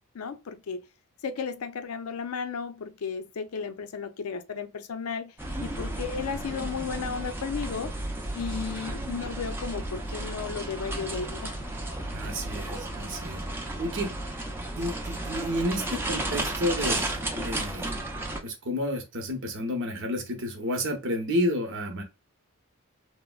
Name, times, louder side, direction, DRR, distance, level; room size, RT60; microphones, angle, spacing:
voice 1, 0.1-0.8 1.2-5.3 5.6-7.9 8.3-11.6 14.0-14.1, left 6 dB, 75° left, 0.5 m, -34 dB
sound 1, 5.4-18.4, right 1 dB, 10° right, 0.5 m, -33 dB
voice 2, 12.1-13.4 13.8-14.1 14.8-17.9 18.4-22.0, equal, 60° right, 0.9 m, -30 dB
3.4 x 2.1 x 2.3 m
head